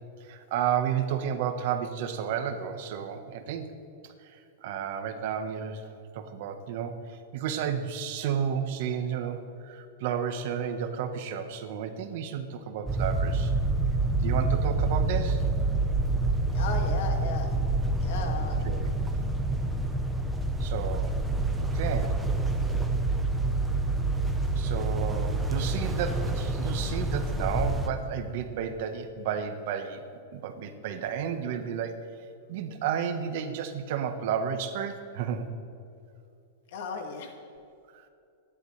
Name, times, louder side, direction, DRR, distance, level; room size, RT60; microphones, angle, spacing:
voice 1, 0.2-3.7 4.0-5.9 6.1-13.5 14.2-15.4 18.6-18.9 20.6-21.2 21.6-22.2 24.6-30.0 30.3-32.1 32.5-35.5 37.9-38.0, right 8 dB, 55° right, 7 dB, 1.3 m, -32 dB
sound 1, 12.9-27.9, right 2 dB, 5° right, 1.0 m, -27 dB
voice 2, 16.5-17.5 18.0-18.6 36.7-37.3, left 5 dB, 60° left, 3 dB, 2.2 m, -35 dB
27.0 x 11.5 x 3.3 m, 2.6 s
supercardioid pair, 155°, 0 cm